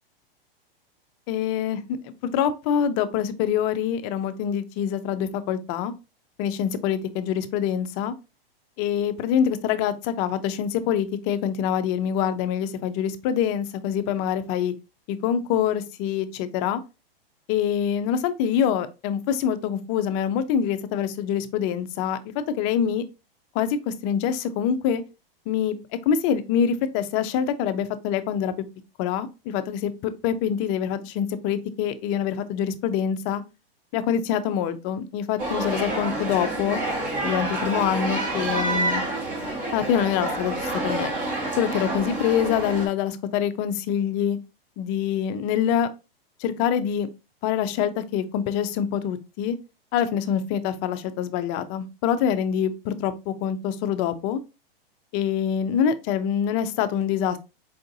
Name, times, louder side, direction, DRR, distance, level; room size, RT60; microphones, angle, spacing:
voice 1, 1.3-5.9 6.4-8.1 8.8-14.7 15.1-16.8 17.5-23.0 23.5-25.0 25.5-25.8 26.1-28.5 29.0-33.4 33.9-36.8 37.2-39.0 39.7-41.1 41.5-44.4 44.8-45.9 46.4-47.1 47.4-49.6 49.9-54.4 55.1-57.4, left 8 dB, 35° left, 0.4 m, -25 dB
sound 1, 35.4-42.9, right 2 dB, 25° right, 1.1 m, -28 dB
4.7 x 2.5 x 2.6 m
hypercardioid pair, 125°, 30 cm